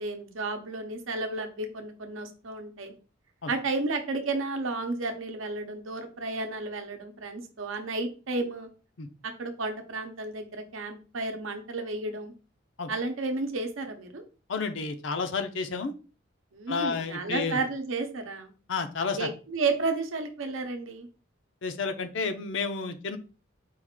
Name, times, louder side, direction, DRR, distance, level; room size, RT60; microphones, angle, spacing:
voice 1, 0.0-2.9 3.5-8.7 9.4-12.3 12.9-14.2 16.5-18.5 19.1-21.1, right 3 dB, 80° right, 6 dB, 0.7 m, -32 dB
voice 2, 14.5-15.9 16.7-17.6 18.7-19.3 21.6-23.2, left 4 dB, 65° left, 7 dB, 0.5 m, -31 dB
4.7 x 2.4 x 3.6 m, 0.36 s
head